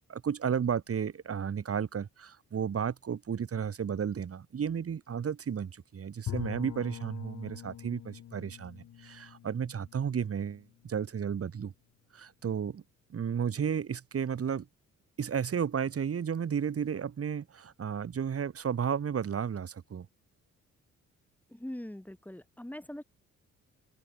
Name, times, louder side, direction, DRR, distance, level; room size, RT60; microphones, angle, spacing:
voice 1, 0.1-11.7 12.1-12.8 13.1-14.7 15.2-20.1, right 7 dB, 50° right, 6.4 m, -33 dB
Bowed string instrument, 6.3-11.1, left 11 dB, 70° left, 4.2 m, -43 dB
voice 2, 21.5-23.0, left 1 dB, 5° left, 7.0 m, -42 dB
cardioid pair, 90°, 30 cm